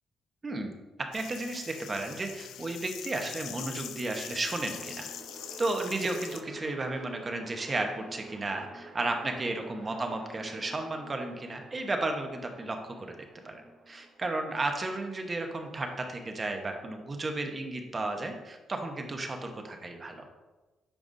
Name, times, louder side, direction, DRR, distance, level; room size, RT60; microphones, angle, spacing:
voice 1, 0.4-0.7 1.1-5.1 5.6-13.2 13.4-13.6 13.9-20.2, right 2 dB, 30° right, 4 dB, 1.0 m, -33 dB
sound 1, 1.1-6.4, left 9 dB, 85° left, 0.4 m, -43 dB
sound 2, 4.1-16.2, right 2 dB, 70° right, 1.9 m, -50 dB
9.0 x 4.8 x 2.7 m, 1.2 s
cardioid pair, 90°, 0 cm